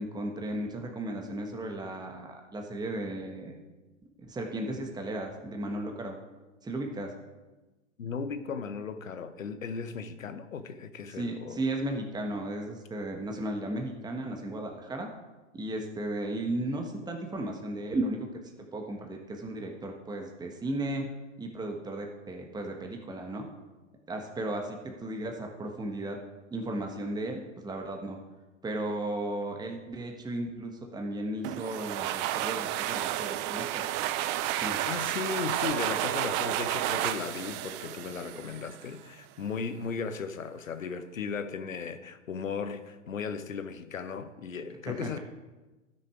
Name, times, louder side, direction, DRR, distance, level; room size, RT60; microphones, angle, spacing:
voice 1, 0.0-3.6 4.2-6.2 6.6-7.1 11.1-15.1 15.5-18.3 18.7-21.1 21.4-23.5 24.1-26.2 26.5-28.2 28.6-33.8 34.6-34.8 44.9-45.2, right 1 dB, 10° right, 2 dB, 1.3 m, -35 dB
voice 2, 8.0-11.6 34.9-45.2, left 5 dB, 90° left, 11 dB, 0.9 m, -36 dB
sound 1, 31.4-38.9, right 13 dB, 30° right, 0.4 m, -31 dB
12.5 x 6.5 x 4.9 m, 1.2 s
hypercardioid pair, 105°, 39 cm